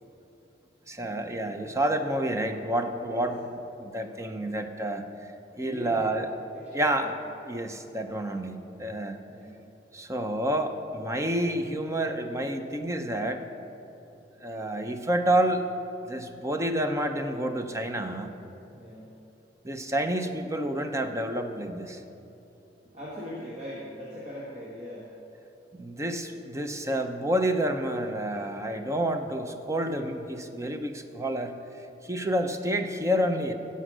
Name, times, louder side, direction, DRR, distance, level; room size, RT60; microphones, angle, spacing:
voice 1, 0.9-5.0 5.6-6.3 6.7-7.1 7.5-9.2 9.9-13.4 14.4-15.6 16.0-18.3 19.6-22.0 25.8-31.5 32.0-33.5, right 1 dB, 15° right, 6 dB, 0.7 m, -29 dB
voice 2, 5.5-6.2 6.5-7.1 9.3-9.6 18.7-19.1 22.9-25.1, equal, 40° right, -6 dB, 1.7 m, -41 dB
16.0 x 5.6 x 6.2 m, 2.9 s
head